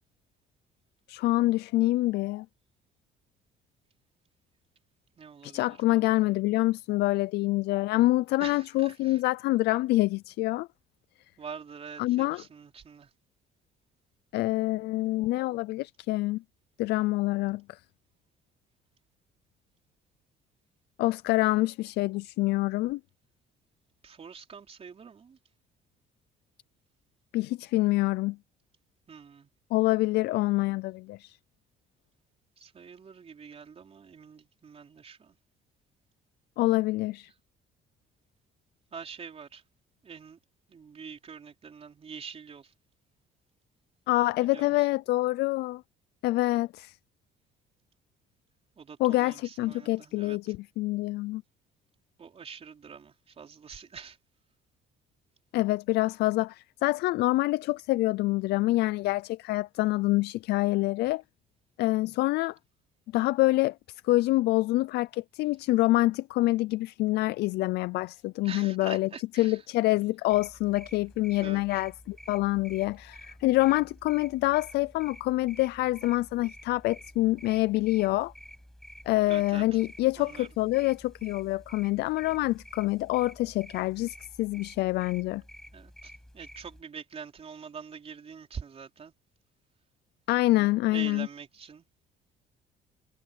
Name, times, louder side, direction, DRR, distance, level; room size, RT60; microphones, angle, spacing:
voice 1, 1.1-2.5 5.4-10.7 12.0-12.4 14.3-16.4 16.8-17.8 21.0-23.0 27.3-28.4 29.7-31.4 36.6-37.3 44.1-45.8 46.2-47.0 49.0-51.4 55.5-61.2 61.8-62.6 63.1-69.1 69.3-78.3 79.1-85.4 90.3-91.3, left 18 dB, 75° left, 0.5 m, -26 dB
voice 2, 5.2-6.1 8.4-9.2 11.4-13.1 24.0-25.4 29.1-29.5 32.6-35.4 38.9-39.6 40.0-40.4 40.7-42.7 44.4-45.0 48.8-50.4 52.2-54.2 68.4-69.6 71.3-71.6 79.3-79.8 80.2-80.5 85.7-89.1 90.5-91.9, right 6 dB, 35° right, 3.9 m, -45 dB
sound 1, 70.3-86.8, equal, 5° left, 5.9 m, -50 dB
cardioid pair, 110°, 17 cm